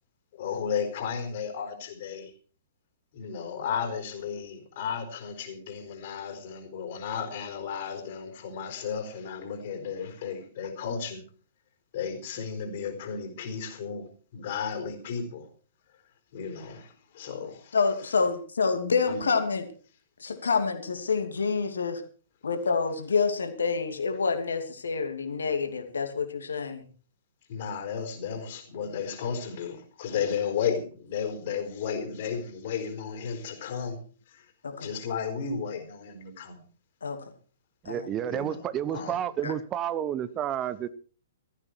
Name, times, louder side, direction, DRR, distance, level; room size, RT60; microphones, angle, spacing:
voice 1, 0.3-2.3 3.1-11.2 11.9-15.5 16.3-17.8 19.1-19.3 27.5-34.0 34.3-34.5 34.8-36.6 38.3-38.7 38.9-39.2, left 7 dB, 50° left, 5 dB, 4.2 m, -34 dB
voice 2, 17.7-19.6 20.2-22.0 22.4-26.8 34.6-34.9 37.0-37.2 37.8-38.1 39.4-39.5, left 5 dB, 70° left, 6 dB, 2.8 m, -27 dB
voice 3, 37.8-40.9, right 10 dB, 25° right, 16 dB, 1.0 m, -30 dB
17.5 x 14.0 x 4.7 m, 0.40 s
figure-of-eight pair, 115°, 0 cm